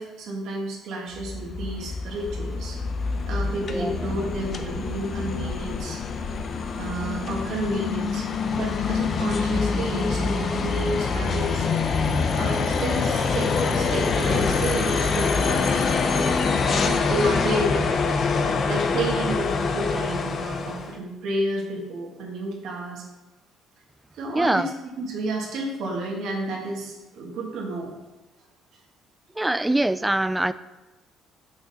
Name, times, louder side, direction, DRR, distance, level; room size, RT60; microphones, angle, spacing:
voice 1, 0.0-2.8 3.3-6.0 6.8-8.3 8.5-11.7 12.4-15.8 16.1-16.3 16.7-18.2 18.4-23.0 24.1-24.7 25.0-27.9, right 1 dB, 75° right, -1 dB, 1.9 m, -30 dB
sound 1, 1.1-20.9, left 4 dB, 50° left, 0.7 m, -25 dB
voice 2, 24.3-24.7 29.4-30.5, right 1 dB, 10° right, 14 dB, 0.3 m, -23 dB
6.2 x 5.9 x 4.2 m, 1.1 s
supercardioid pair, 80°, 0 cm